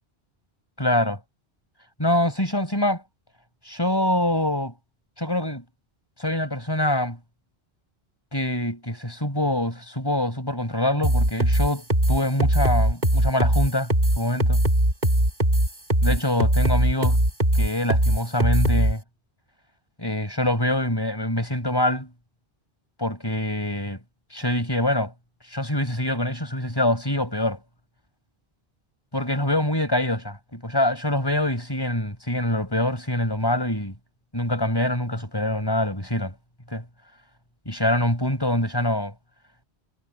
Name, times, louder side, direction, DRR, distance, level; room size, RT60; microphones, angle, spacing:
voice 1, 0.8-1.2 2.0-3.0 3.7-4.7 5.2-5.6 6.2-7.2 8.3-14.6 16.0-17.2 17.5-19.0 20.0-22.1 23.0-24.0 24.3-25.1 25.5-27.6 29.1-33.9 34.3-36.3 36.7-36.8 37.7-39.1, left 1 dB, 20° left, 6.1 m, -25 dB
sound 1, 11.0-18.9, right 1 dB, 45° right, 5.8 m, -20 dB
omnidirectional pair, 1.1 m